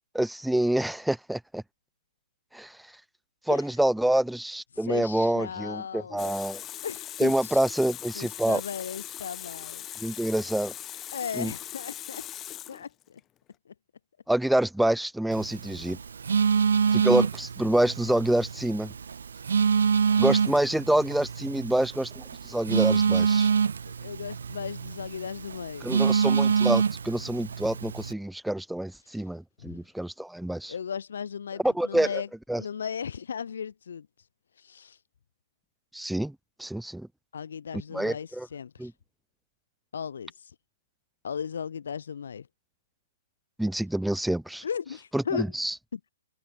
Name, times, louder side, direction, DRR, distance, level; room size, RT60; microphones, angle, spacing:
voice 1, 0.1-1.6 2.5-2.8 3.5-6.6 7.2-8.6 10.0-10.7 11.4-11.5 14.3-16.0 16.9-18.9 20.2-23.5 25.8-30.7 31.6-32.2 32.5-32.6 35.9-37.1 37.9-38.5 38.8-38.9 43.6-44.6 45.1-45.7, right 1 dB, ahead, 1.0 m, -27 dB
voice 2, 3.5-3.8 4.7-6.3 6.8-7.6 8.1-9.9 11.1-12.3 12.7-13.2 13.7-13.8 23.8-25.9 29.0-29.3 29.6-29.8 30.7-32.3 32.5-34.3 34.5-35.0 37.3-38.9 39.9-40.5 41.2-42.5 44.6-45.4 45.9-46.0, left 7 dB, 75° left, 1.5 m, -36 dB
Water tap faucet, 6.2-13.2, left 12 dB, 20° left, 6.6 m, -40 dB
Telephone, 15.3-28.1, right 6 dB, 75° right, 0.3 m, -26 dB
hypercardioid pair, 135°, 0 cm